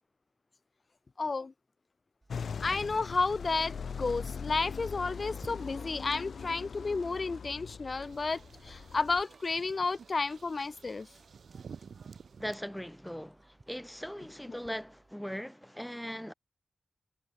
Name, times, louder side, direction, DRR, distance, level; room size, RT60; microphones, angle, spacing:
voice 1, 1.2-1.5 2.6-3.7 4.0-11.1 14.5-14.6, left 4 dB, 40° left, 0.5 m, -32 dB
sound 1, 2.2-15.1, right 2 dB, 25° right, 3.5 m, -60 dB
sound 2, 2.3-9.2, left 6 dB, 75° left, 1.4 m, -41 dB
sound 3, 7.9-12.6, right 6 dB, 75° right, 1.4 m, -52 dB
voice 2, 12.4-16.3, equal, 5° left, 0.8 m, -40 dB
wide cardioid pair, 150°, 0 cm